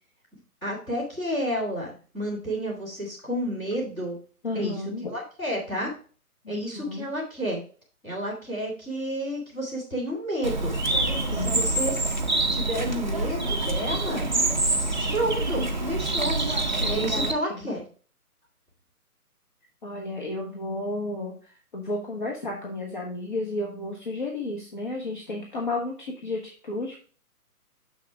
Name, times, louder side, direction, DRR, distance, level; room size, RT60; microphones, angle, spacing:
voice 1, 0.6-4.1 4.5-4.8 5.1-5.9 6.5-7.6 8.0-10.7 11.3-12.2 12.5-14.3 15.1-16.4 16.9-17.8, equal, 10° left, -8 dB, 2.0 m, -30 dB
voice 2, 4.4-5.1 6.4-7.1 11.3-11.7 16.8-17.6 19.8-21.4 21.7-27.0, left 2 dB, 30° left, -1 dB, 1.2 m, -32 dB
Bird, 10.4-17.3, right 2 dB, 30° right, 0.6 m, -26 dB
6.8 x 6.2 x 3.3 m, 0.39 s
hypercardioid pair, 170°, 46 cm